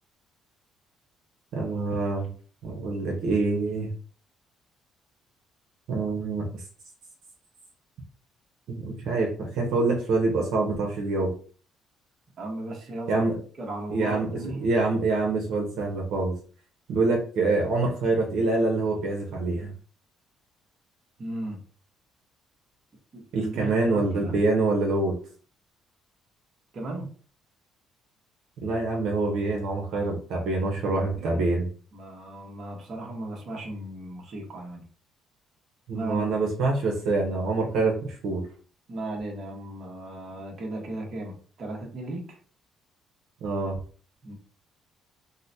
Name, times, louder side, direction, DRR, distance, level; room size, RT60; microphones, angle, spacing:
voice 1, 1.5-2.3 2.6-3.9 5.9-6.6 8.7-11.3 13.1-13.4 13.9-14.3 14.6-16.3 16.9-19.7 23.3-25.1 28.6-31.7 35.9-38.4 43.4-43.8, right 3 dB, 75° right, 0 dB, 0.9 m, -25 dB
voice 2, 12.4-13.2 13.6-14.6 21.2-21.6 23.1-24.4 26.7-27.1 31.2-31.4 31.9-34.8 35.9-36.2 38.9-42.4 44.2-44.3, right 1 dB, 45° right, 0 dB, 1.1 m, -36 dB
3.8 x 2.1 x 2.7 m, 0.42 s
cardioid pair, 120°, 0 cm